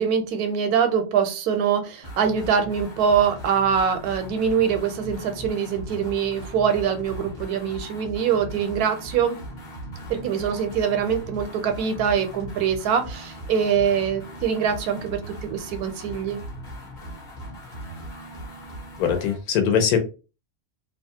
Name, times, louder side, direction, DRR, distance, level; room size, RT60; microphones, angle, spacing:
voice 1, 0.0-9.4 10.1-16.4, right 7 dB, 90° right, 8 dB, 1.1 m, -24 dB
sound 1, 2.0-19.4, equal, 40° left, 0.8 m, -39 dB
voice 2, 19.0-20.0, left 7 dB, 85° left, 6 dB, 1.2 m, -21 dB
2.9 x 2.3 x 2.7 m, 0.31 s
omnidirectional pair, 1.5 m